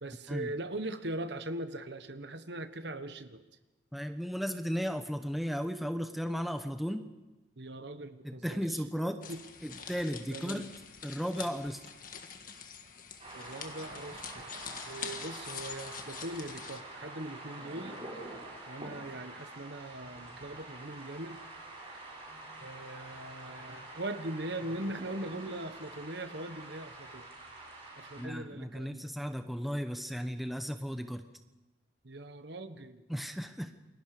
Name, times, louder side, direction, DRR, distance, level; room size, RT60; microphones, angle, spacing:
voice 1, 0.0-3.4 7.6-8.8 9.3-9.4 10.3-10.7 13.3-14.6 14.8-18.0 18.7-21.4 22.6-27.3 28.0-29.1 32.0-33.0, right 1 dB, 60° right, 10 dB, 1.4 m, -40 dB
voice 2, 3.9-7.1 8.2-9.2 9.6-10.7 11.0-11.8 28.2-31.3 33.1-33.7, equal, ahead, 7 dB, 1.0 m, -35 dB
sound 1, 9.2-16.8, left 7 dB, 45° left, 1.8 m, -45 dB
sound 2, 13.2-28.2, right 2 dB, 30° right, 6.6 m, -47 dB
29.0 x 22.5 x 5.1 m, 1.1 s
head